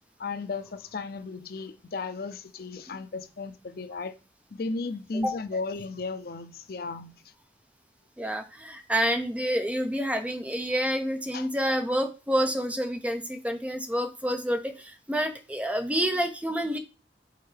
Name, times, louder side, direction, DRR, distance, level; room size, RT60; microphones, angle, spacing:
voice 1, 0.2-4.1 4.5-7.1 11.3-11.5, left 3 dB, 55° left, 0.5 m, -35 dB
voice 2, 8.2-16.8, equal, 10° right, 0.6 m, -28 dB
6.6 x 4.3 x 3.3 m
head